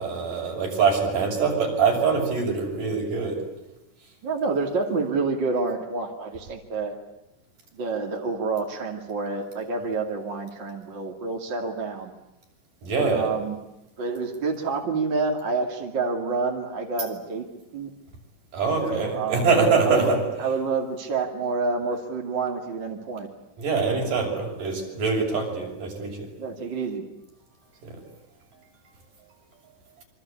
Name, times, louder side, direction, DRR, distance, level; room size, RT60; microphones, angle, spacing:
voice 1, 0.0-3.4 12.8-13.3 18.5-20.2 23.6-26.3 27.8-28.0, right 5 dB, 85° right, 1 dB, 8.2 m, -24 dB
voice 2, 4.2-7.0 7.7-12.1 13.0-13.7 14.0-17.4 17.7-17.9 18.8-23.3 26.4-27.0, right 3 dB, 35° right, 1 dB, 2.9 m, -28 dB
27.0 x 25.0 x 8.5 m, 0.93 s
omnidirectional pair, 3.7 m